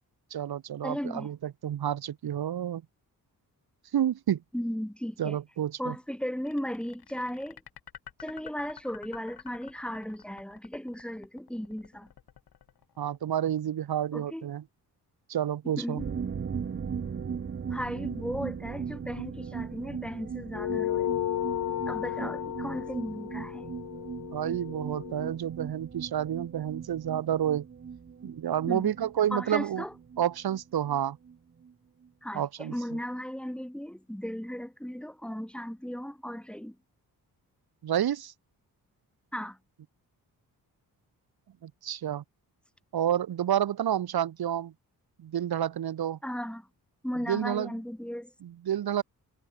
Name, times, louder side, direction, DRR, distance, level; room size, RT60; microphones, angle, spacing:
voice 1, 0.3-2.8 3.9-4.4 5.2-6.0 13.0-14.6 15.3-16.0 24.3-27.7 28.2-29.8 30.2-31.2 32.3-32.7 37.8-38.3 41.6-42.2 42.9-44.7 45.2-46.2 47.3-47.7 48.4-49.0, right 10 dB, 75° right, 2.0 m, -29 dB
voice 2, 0.8-1.3 4.5-5.4 5.8-7.6 8.2-12.1 14.1-14.5 15.8-16.1 17.7-21.1 21.9-23.7 28.7-28.9 29.3-29.9 32.2-36.8 39.3-39.6 46.2-46.7 47.0-48.3, equal, 5° left, 4.3 m, -36 dB
sound 1, 6.5-13.6, left 9 dB, 80° left, 4.8 m, -50 dB
sound 2, 16.0-31.4 31.6-31.7 32.0-32.1, right 6 dB, 35° right, 0.8 m, -38 dB
sound 3, 20.5-25.3, left 13 dB, 60° left, 0.6 m, -33 dB
cardioid pair, 95°, 37 cm